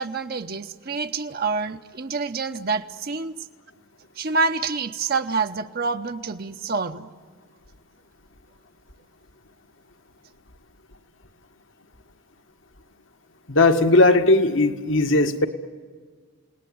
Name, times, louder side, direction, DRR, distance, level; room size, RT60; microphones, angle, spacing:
voice 1, 0.0-3.4 4.2-7.1, right 4 dB, 45° right, 7 dB, 0.8 m, -27 dB
voice 2, 13.5-15.5, left 2 dB, 70° left, 6 dB, 1.8 m, -18 dB
29.5 x 18.5 x 9.3 m, 1.5 s
head